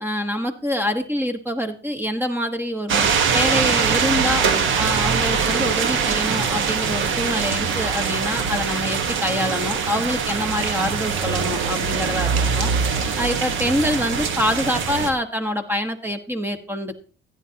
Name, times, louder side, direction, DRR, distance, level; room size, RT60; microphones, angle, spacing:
voice 1, 0.0-3.1 3.3-4.5 4.7-12.7 13.2-17.0, equal, 10° right, 8 dB, 1.3 m, -25 dB
sound 1, 2.9-15.1, right 6 dB, 75° right, 1.4 m, -22 dB
14.5 x 10.0 x 2.9 m, 0.39 s
cardioid pair, 90°, 20 cm